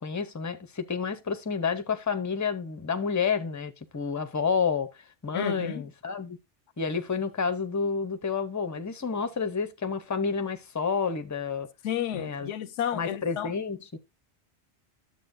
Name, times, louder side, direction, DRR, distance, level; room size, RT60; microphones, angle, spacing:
voice 1, 0.0-4.9 5.2-6.4 6.8-11.7 12.1-12.5 12.9-14.0, left 5 dB, 20° left, 0.5 m, -29 dB
voice 2, 5.3-5.8 11.8-13.5, left 10 dB, 85° left, 1.0 m, -31 dB
11.0 x 7.5 x 2.6 m
omnidirectional pair, 1.2 m